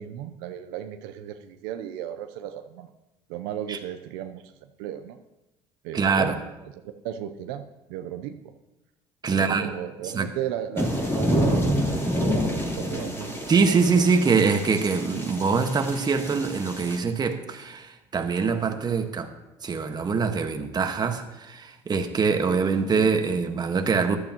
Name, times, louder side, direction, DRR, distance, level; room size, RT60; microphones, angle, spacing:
voice 1, 0.0-2.9 3.3-4.5 4.8-5.2 5.8-6.4 7.0-7.6 7.9-8.5 9.3-13.7 14.0-14.1, right 10 dB, 85° right, 0.7 m, -35 dB
voice 2, 5.9-6.3 9.2-9.7 10.0-10.3 13.5-19.3 19.6-24.2, right 5 dB, 35° right, 1.4 m, -24 dB
sound 1, 10.8-17.0, equal, 20° left, 3.4 m, -28 dB
14.5 x 11.5 x 3.0 m
supercardioid pair, 80°, 12 cm